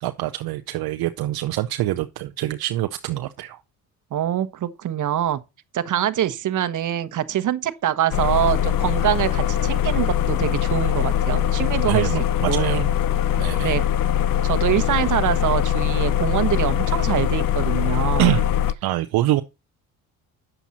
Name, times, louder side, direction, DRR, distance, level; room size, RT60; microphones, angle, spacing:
voice 1, 0.0-3.6 11.8-12.8 13.4-13.8 18.2-18.4 18.8-19.4, right 15 dB, 70° right, 0.8 m, -25 dB
voice 2, 4.1-5.4 5.7-12.1 12.4-12.9 13.6-13.8 14.4-18.3, right 11 dB, 50° right, 1.2 m, -24 dB
sound 1, 8.1-18.7, left 11 dB, 60° left, 0.8 m, -22 dB
9.2 x 7.2 x 4.1 m
supercardioid pair, 85°, 38 cm